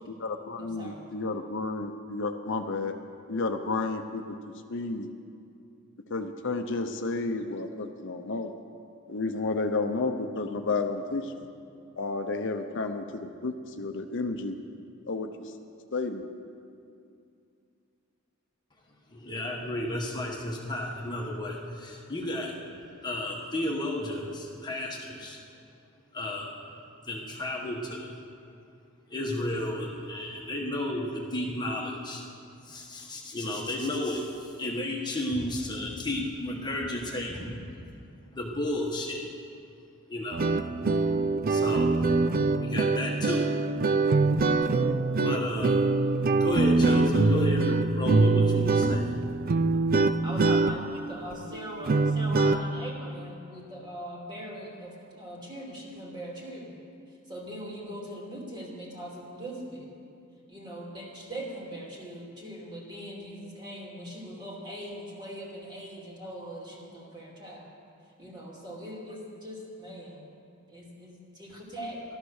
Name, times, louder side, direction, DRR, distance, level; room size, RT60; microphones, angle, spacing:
voice 1, 0.1-2.9 3.3-4.4 4.7-5.1 6.1-8.5 9.1-11.5 12.0-14.6 15.1-15.5 15.9-16.2, left 3 dB, 60° left, 6 dB, 0.8 m, -31 dB
voice 2, 0.6-1.0 50.2-56.8 57.3-59.9 60.5-67.7 68.2-70.2 70.7-72.0, equal, 20° right, -3 dB, 2.8 m, -41 dB
voice 3, 19.1-25.4 26.1-26.5 27.1-28.1 29.1-32.3 32.6-37.6 38.3-39.3 40.1-40.4 41.5-42.0 42.5-43.6 45.2-45.9 46.4-49.3, left 1 dB, 20° left, -2 dB, 1.4 m, -32 dB
sound 1, 40.3-52.6, right 3 dB, 45° right, 0.5 m, -24 dB
15.0 x 12.5 x 6.5 m, 2.5 s
head